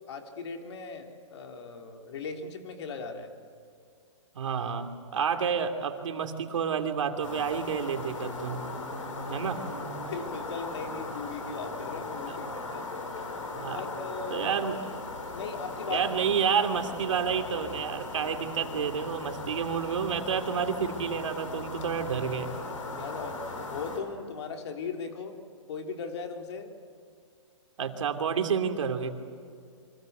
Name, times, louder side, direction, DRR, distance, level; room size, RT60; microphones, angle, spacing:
voice 1, 0.1-3.3 10.1-12.8 13.7-14.5 15.3-16.0 22.9-25.4 25.7-26.7, left 5 dB, 60° left, 4 dB, 3.3 m, -38 dB
voice 2, 4.3-8.6 9.3-9.6 12.3-12.4 13.5-13.8 14.3-14.8 15.9-22.5 27.8-29.1, right 7 dB, 75° right, 6 dB, 3.0 m, -29 dB
sound 1, 7.2-24.0, left 3 dB, 85° left, 5.5 m, -38 dB
29.0 x 25.0 x 8.1 m, 2.3 s
hypercardioid pair, 160°, 16 cm